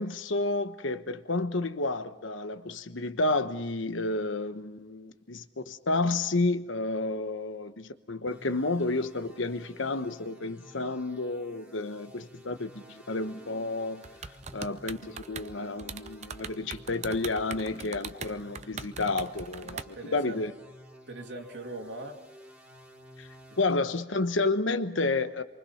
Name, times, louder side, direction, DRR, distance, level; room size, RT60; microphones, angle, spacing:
voice 1, 0.0-14.0 14.5-20.5 23.2-23.3 23.6-25.4, left 2 dB, 85° left, 1.2 m, -30 dB
sound 1, 8.3-23.6, equal, 5° right, 2.6 m, -52 dB
sound 2, 14.0-15.5 15.8-19.8, right 5 dB, 35° right, 0.7 m, -40 dB
voice 2, 19.6-20.4 21.1-22.2 23.5-23.9, right 2 dB, 65° right, 2.6 m, -41 dB
27.0 x 24.0 x 5.8 m
head